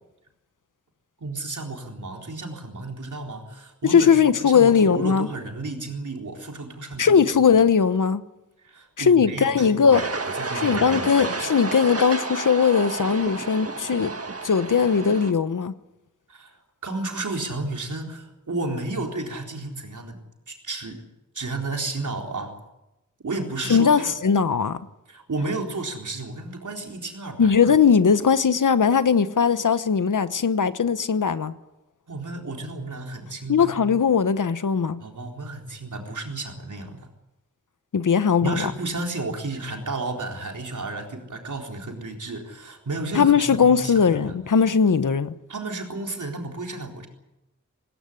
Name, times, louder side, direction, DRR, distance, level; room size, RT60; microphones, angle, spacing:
voice 1, 1.2-4.1 4.4-7.2 8.6-10.1 10.3-11.5 16.3-16.6 16.8-20.2 20.5-21.0 21.3-22.6 23.2-24.1 25.1-27.6 32.1-33.7 35.0-37.1 38.4-44.4 45.5-47.1, right 2 dB, 80° right, 4.1 m, -32 dB
voice 2, 3.9-5.3 7.0-8.2 9.0-10.0 10.5-14.1 14.4-15.7 23.7-24.8 27.4-31.5 33.5-35.0 37.9-38.7 43.1-45.3, left 6 dB, 90° left, 1.1 m, -19 dB
sound 1, 9.9-15.3, right 3 dB, 50° right, 1.9 m, -31 dB
18.5 x 18.5 x 9.9 m
cardioid pair, 45°, 30 cm